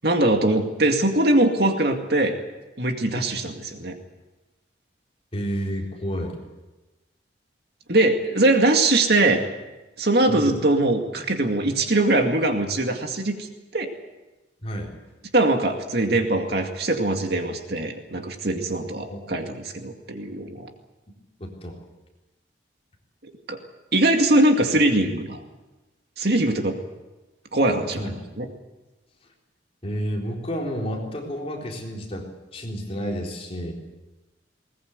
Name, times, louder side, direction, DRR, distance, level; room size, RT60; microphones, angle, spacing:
voice 1, 0.0-2.3 2.8-4.0 7.9-9.4 10.0-13.4 13.7-13.9 15.3-20.7 23.5-23.6 23.9-25.4 26.2-26.8 27.5-28.5, right 2 dB, 60° right, 4 dB, 2.2 m, -21 dB
voice 2, 5.3-6.4 10.3-10.6 14.6-15.0 19.1-19.2 21.4-21.8 27.9-28.1 29.8-33.7, equal, 35° left, -1 dB, 4.0 m, -30 dB
20.5 x 20.0 x 8.2 m, 1.1 s
head